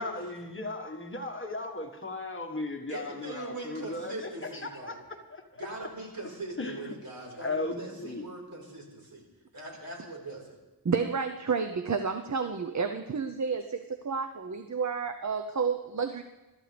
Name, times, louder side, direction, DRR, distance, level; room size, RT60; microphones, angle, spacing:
voice 1, 0.0-4.1 4.6-4.9 5.3-5.6 6.6-6.9 7.4-8.2, left 2 dB, 30° left, 3 dB, 1.5 m, -36 dB
voice 2, 2.9-5.0 5.6-9.3 9.5-10.6, right 2 dB, 65° right, -1 dB, 4.5 m, -41 dB
voice 3, 10.8-16.2, right 5 dB, 50° right, 7 dB, 0.7 m, -30 dB
25.0 x 13.0 x 3.4 m, 1.1 s
wide cardioid pair, 100°, 38 cm